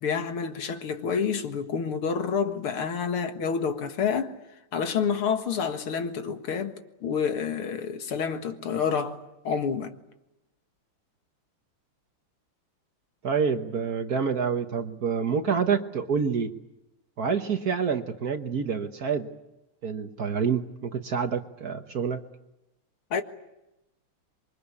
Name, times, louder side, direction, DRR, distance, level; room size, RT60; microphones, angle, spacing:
voice 1, 0.0-4.3 4.7-10.0 23.1-23.2, left 6 dB, 80° left, 2.6 m, -28 dB
voice 2, 13.2-16.5 17.2-19.3 19.8-22.2, right 6 dB, 50° right, 1.4 m, -27 dB
27.0 x 23.5 x 8.4 m
omnidirectional pair, 2.4 m